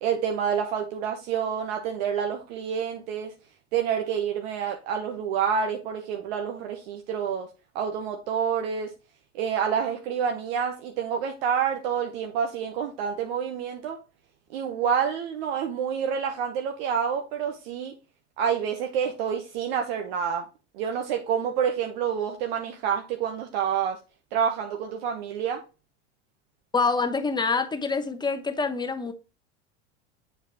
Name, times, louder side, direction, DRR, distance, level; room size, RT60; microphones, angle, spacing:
voice 1, 0.0-3.3 3.7-7.5 7.7-8.9 9.3-14.0 14.5-17.9 18.4-20.5 20.7-24.0 24.3-25.6, right 7 dB, 65° right, 0.9 m, -28 dB
voice 2, 26.7-29.1, left 4 dB, 15° left, 0.9 m, -26 dB
7.1 x 4.8 x 2.8 m
hypercardioid pair, 90°, 34 cm